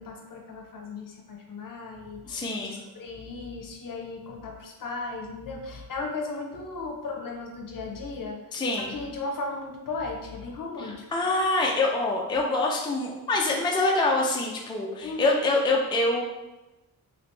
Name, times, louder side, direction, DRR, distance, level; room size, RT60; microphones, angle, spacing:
voice 1, 0.0-11.1 15.0-15.5, left 3 dB, 65° left, 2 dB, 0.7 m, -36 dB
voice 2, 2.3-2.7 8.5-8.9 10.8-16.2, left 2 dB, 15° left, -1 dB, 0.4 m, -25 dB
3.2 x 2.9 x 3.1 m, 1.0 s
wide cardioid pair, 145°, 36 cm